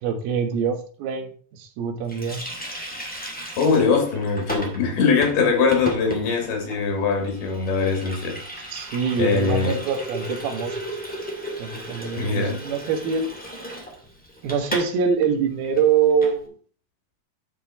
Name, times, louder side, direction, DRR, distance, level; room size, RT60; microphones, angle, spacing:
voice 1, 0.0-2.5 8.7-10.8 11.6-13.3 14.4-16.5, right 6 dB, 80° right, 3.2 m, -24 dB
Water tap faucet, 2.1-15.0 15.2-15.3 15.6-16.4, right 1 dB, 5° left, 1.0 m, -35 dB
voice 2, 3.6-8.4 9.2-9.8 12.2-12.6, left 5 dB, 85° left, 4.6 m, -22 dB
11.5 x 5.5 x 4.2 m
omnidirectional pair, 4.4 m